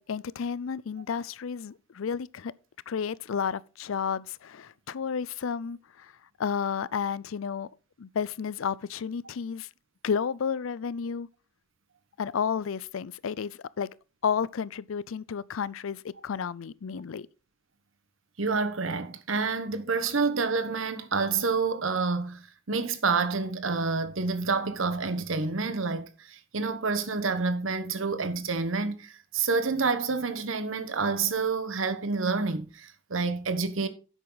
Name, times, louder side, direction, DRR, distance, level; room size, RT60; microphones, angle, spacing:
voice 1, 0.0-2.5 2.9-6.1 6.4-7.7 8.0-9.7 10.0-11.3 12.2-13.9 14.2-17.3, left 6 dB, 80° left, 0.4 m, -32 dB
voice 2, 18.4-33.9, right 4 dB, 70° right, 1.2 m, -28 dB
10.5 x 8.1 x 4.0 m
head